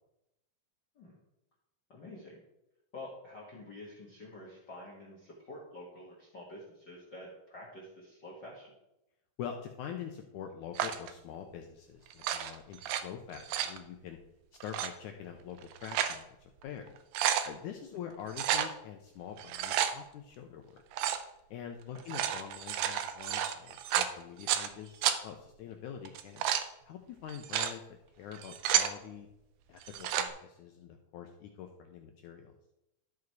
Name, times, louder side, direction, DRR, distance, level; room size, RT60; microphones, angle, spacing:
voice 1, 1.9-2.4 2.9-8.7 17.8-18.0 21.9-22.0, left 1 dB, 50° left, -3 dB, 1.4 m, -48 dB
voice 2, 9.4-14.2 14.6-16.9 17.5-20.8 21.5-26.4 26.9-29.3 29.7-32.5, left 8 dB, 85° left, 4 dB, 1.7 m, -45 dB
sound 1, 10.7-11.1 12.1-13.0 13.3-13.8 14.6-14.9 15.6-16.2 16.6-16.7 17.0-17.5 18.3-18.7 19.4-19.9 20.9-21.2 22.0-24.7 25.0-25.2 26.0-26.7 27.3-27.7 28.3-28.9 29.8-30.3, right 10 dB, 85° right, 1.7 m, -31 dB
12.5 x 4.9 x 4.7 m, 0.87 s
omnidirectional pair, 4.4 m